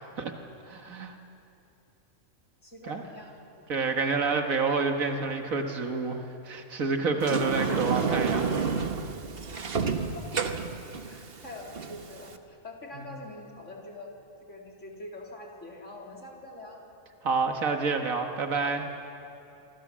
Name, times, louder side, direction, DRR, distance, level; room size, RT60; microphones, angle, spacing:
voice 1, 0.7-1.2 2.9-3.0 3.7-8.6 17.2-18.9, right 4 dB, 85° right, 4 dB, 2.0 m, -28 dB
voice 2, 2.6-3.7 10.0-10.7 11.0-14.1 14.5-16.8, left 2 dB, 65° left, -1 dB, 4.0 m, -44 dB
Sliding door, 7.2-12.4, right 5 dB, 45° right, 1.4 m, -30 dB
27.0 x 24.5 x 7.5 m, 2.8 s
omnidirectional pair, 1.4 m